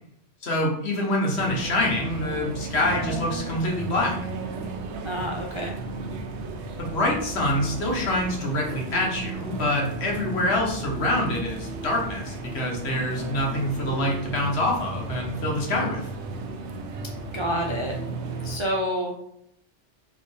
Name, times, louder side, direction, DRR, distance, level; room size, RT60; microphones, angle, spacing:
voice 1, 0.4-4.2 6.8-16.0, left 1 dB, 65° left, -1 dB, 1.3 m, -26 dB
sound 1, 1.3-18.6, right 3 dB, 75° right, 0.9 m, -34 dB
voice 2, 5.0-5.7 17.3-17.9 18.4-19.1, equal, 40° right, -1 dB, 0.4 m, -28 dB
4.3 x 3.5 x 3.2 m, 0.74 s
omnidirectional pair, 1.2 m